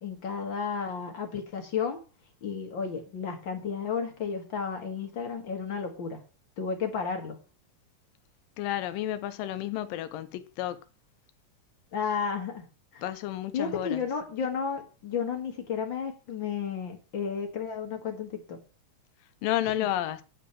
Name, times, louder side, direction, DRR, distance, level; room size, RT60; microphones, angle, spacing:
voice 1, 0.0-2.0 2.4-6.2 6.6-7.4 11.9-12.6 12.9-13.0 13.5-18.6, left 6 dB, 40° left, 2.1 m, -32 dB
voice 2, 8.6-10.8 13.0-14.0 19.4-20.2, left 12 dB, 85° left, 2.4 m, -31 dB
10.5 x 5.0 x 7.2 m
omnidirectional pair, 4.0 m